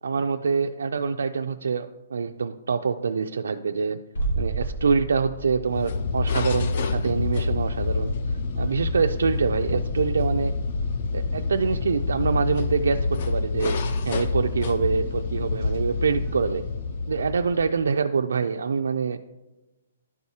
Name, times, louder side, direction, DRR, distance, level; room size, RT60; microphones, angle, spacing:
voice 1, 0.0-4.0 4.4-8.1 8.6-10.5 11.1-13.7 14.1-16.6 17.1-19.2, right 5 dB, 85° right, 5 dB, 0.3 m, -25 dB
sound 1, 4.1-9.9 10.1-10.2, right 3 dB, 80° left, 1.3 m, -34 dB
sound 2, 5.6-17.8, left 3 dB, 35° left, 0.4 m, -27 dB
11.5 x 4.7 x 2.8 m, 1.1 s
hypercardioid pair, 180°, 0 cm